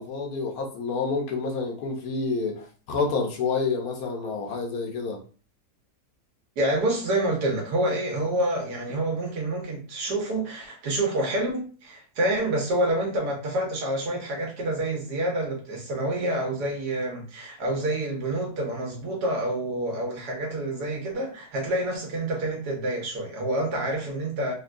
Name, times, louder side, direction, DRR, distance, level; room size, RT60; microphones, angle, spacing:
voice 1, 0.0-5.2, left 4 dB, 75° left, 1.3 m, -28 dB
voice 2, 6.6-24.5, right 1 dB, 90° right, 1.5 m, -27 dB
3.5 x 2.2 x 2.5 m
omnidirectional pair, 1.7 m